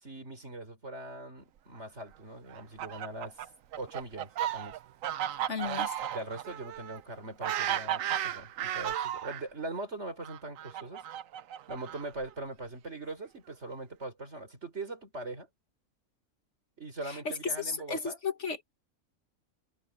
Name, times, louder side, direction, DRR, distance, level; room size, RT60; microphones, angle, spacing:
voice 1, 0.0-3.5 3.8-4.8 6.1-11.1 11.7-15.5 16.8-18.2, right 2 dB, 55° right, 4.4 m, -41 dB
Fowl, 2.5-9.4 10.2-12.3, right 11 dB, 75° right, 1.1 m, -34 dB
voice 2, 5.5-5.9 17.1-18.8, left 5 dB, 55° left, 2.0 m, -34 dB
omnidirectional pair, 1.4 m